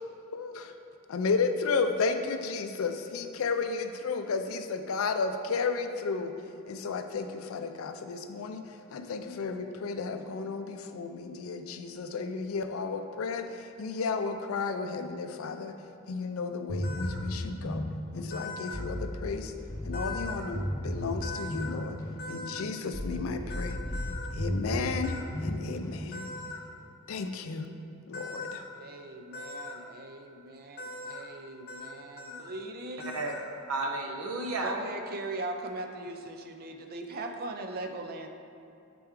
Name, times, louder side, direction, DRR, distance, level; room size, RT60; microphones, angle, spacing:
voice 1, 0.3-0.7 1.1-6.3 6.7-8.7 8.9-15.8 16.1-17.9 18.1-19.5 19.8-22.0 22.3-23.8 24.3-26.3 27.1-27.7 28.1-28.6, left 4 dB, 70° left, 8 dB, 0.4 m, -33 dB
sound 1, 16.7-26.5, equal, 15° left, 0.6 m, -35 dB
sound 2, 16.8-17.2 18.3-18.8 19.9-20.5 21.2-21.7 22.2-22.6 23.5-24.3 25.0-25.2 26.1-26.6 28.1-28.6 29.3-29.8 30.8-31.2 31.7-31.9 32.2-32.5 33.0-33.5, left 3 dB, 50° left, 0.8 m, -40 dB
voice 2, 28.7-33.1 34.6-38.3, right 2 dB, 45° right, 5 dB, 0.4 m, -39 dB
voice 3, 33.7-34.8, right 2 dB, 85° right, 2 dB, 0.7 m, -32 dB
6.8 x 4.4 x 3.6 m, 2.7 s
head